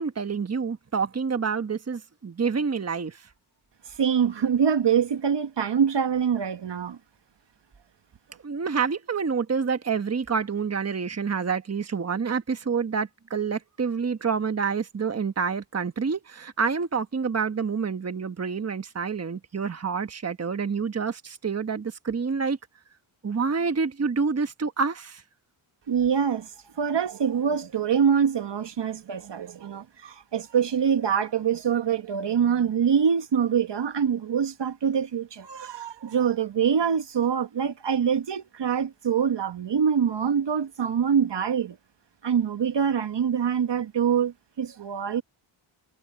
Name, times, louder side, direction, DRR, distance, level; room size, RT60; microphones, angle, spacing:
voice 1, 0.0-3.3 8.4-22.6 23.2-25.2, right 5 dB, 30° right, 1.3 m, -28 dB
voice 2, 4.0-7.0 25.9-26.5 26.8-41.8 42.2-45.2, right 7 dB, 55° right, 1.4 m, -24 dB
cardioid pair, 70°, 49 cm